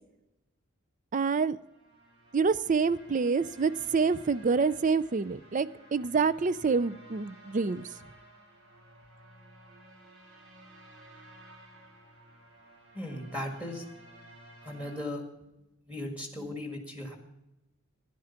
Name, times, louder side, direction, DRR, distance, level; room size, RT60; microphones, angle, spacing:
voice 1, 1.1-1.6 2.3-7.9, right 5 dB, 35° right, 17 dB, 0.4 m, -27 dB
sound 1, 1.5-15.0, right 1 dB, 55° right, 5.6 m, -54 dB
voice 2, 12.9-13.8 14.6-15.2 15.9-17.2, left 1 dB, 5° right, 2 dB, 1.9 m, -37 dB
13.0 x 10.5 x 5.7 m, 0.95 s
head